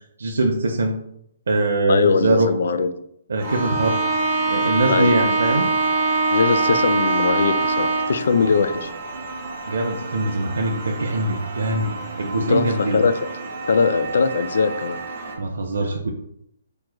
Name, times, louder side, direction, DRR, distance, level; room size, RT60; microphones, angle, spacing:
voice 1, 0.2-1.0 1.5-2.5 3.3-4.0 4.5-5.7 9.7-11.9 12.2-13.0 15.4-16.1, right 2 dB, 80° right, 1 dB, 0.5 m, -22 dB
voice 2, 1.9-2.9 4.9-5.2 6.3-8.9 12.5-13.1 13.7-15.0, left 5 dB, 55° left, 11 dB, 0.3 m, -20 dB
Bowed string instrument, 3.4-8.3, right 3 dB, 5° right, 1.2 m, -22 dB
sound 1, 3.4-15.4, right 3 dB, 25° right, 0.6 m, -33 dB
4.7 x 3.1 x 2.2 m, 0.74 s
hypercardioid pair, 180°, 0 cm